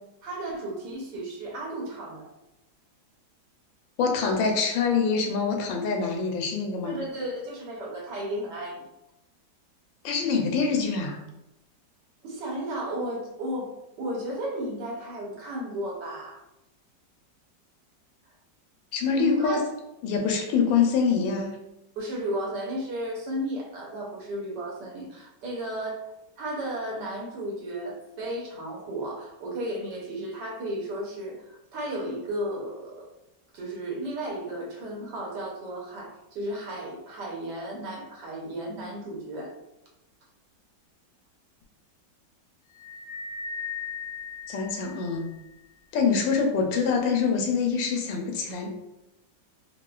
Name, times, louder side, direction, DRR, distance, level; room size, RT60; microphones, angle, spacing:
voice 1, 0.2-2.3 6.8-8.9 12.2-16.4 19.2-19.7 22.0-33.1 33.5-39.5, right 1 dB, 70° right, -2 dB, 1.4 m, -34 dB
voice 2, 4.0-7.0 10.0-11.2 18.9-19.6 20.0-21.5 44.5-45.3 45.9-48.7, left 5 dB, 90° left, 2 dB, 1.4 m, -25 dB
sound 1, 42.8-45.4, left 5 dB, 75° left, 1.3 m, -37 dB
4.2 x 2.1 x 2.3 m, 0.92 s
omnidirectional pair, 2.0 m